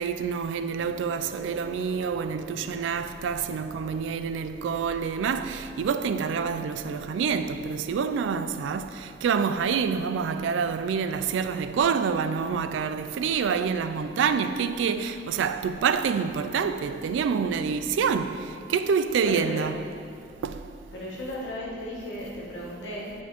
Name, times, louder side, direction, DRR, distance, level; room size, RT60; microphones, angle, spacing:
voice 1, 0.0-19.8 20.4-20.7, right 6 dB, 80° right, 0.3 m, -27 dB
sound 1, 0.8-15.7, equal, 35° right, 0.7 m, -51 dB
voice 2, 19.2-19.7 20.9-23.1, equal, 80° left, 1.4 m, -35 dB
9.4 x 4.2 x 3.0 m
head